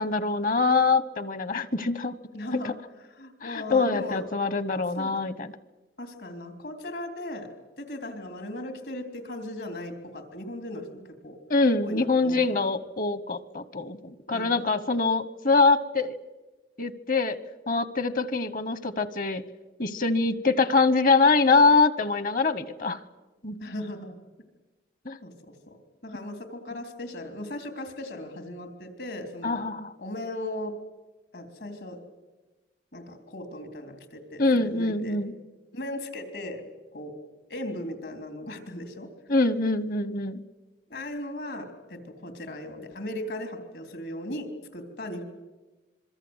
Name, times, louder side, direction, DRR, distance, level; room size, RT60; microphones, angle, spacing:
voice 1, 0.0-2.1 2.5-2.7 3.4-5.5 11.5-16.1 16.8-17.4 17.7-19.4 19.8-23.0 23.4-23.6 25.1-25.2 29.4-29.9 34.4-35.3 39.3-40.4, left 3 dB, 50° left, 16 dB, 1.0 m, -24 dB
voice 2, 2.3-2.8 3.2-4.2 5.0-5.1 6.0-7.5 7.8-11.4 11.8-12.7 14.3-14.5 23.6-24.1 25.2-25.8 26.0-29.6 30.0-30.8 31.3-32.0 32.9-35.2 35.7-36.6 36.9-37.2 37.5-39.1 40.9-45.2, left 1 dB, 75° left, 6 dB, 3.6 m, -37 dB
26.0 x 23.0 x 8.1 m, 1.1 s
head